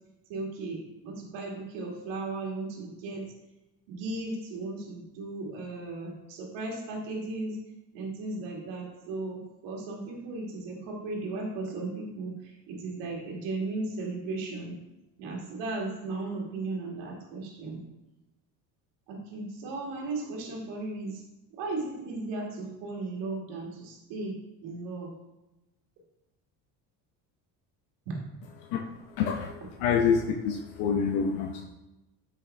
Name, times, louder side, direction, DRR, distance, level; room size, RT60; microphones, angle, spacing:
voice 1, 0.3-3.3 3.9-7.6 7.9-14.8 15.2-17.8 19.1-21.2 21.5-25.1 28.1-28.2, right 3 dB, 80° right, -1 dB, 2.5 m, -36 dB
voice 2, 29.2-31.6, left 6 dB, 85° left, 2 dB, 1.0 m, -27 dB
8.8 x 6.3 x 3.4 m, 0.98 s
supercardioid pair, 100°, 43 cm